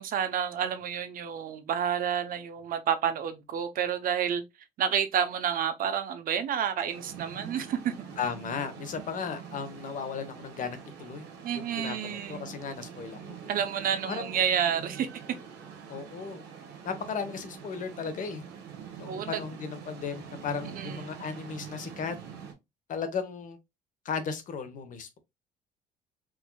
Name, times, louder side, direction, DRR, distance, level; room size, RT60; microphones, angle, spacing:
voice 1, 0.0-4.4 4.8-8.1 11.4-12.5 13.5-15.1 19.1-19.4 20.8-21.3, right 8 dB, 55° right, 0.7 m, -30 dB
sound 1, 6.9-22.5, right 7 dB, 85° right, 1.1 m, -45 dB
voice 2, 8.2-11.2 11.5-13.4 14.1-14.4 15.0-15.1 15.9-16.4 16.8-18.4 19.0-22.2 22.9-23.6 24.0-25.2, left 6 dB, 50° left, 1.0 m, -36 dB
4.7 x 2.7 x 2.2 m
cardioid pair, 110°, 17 cm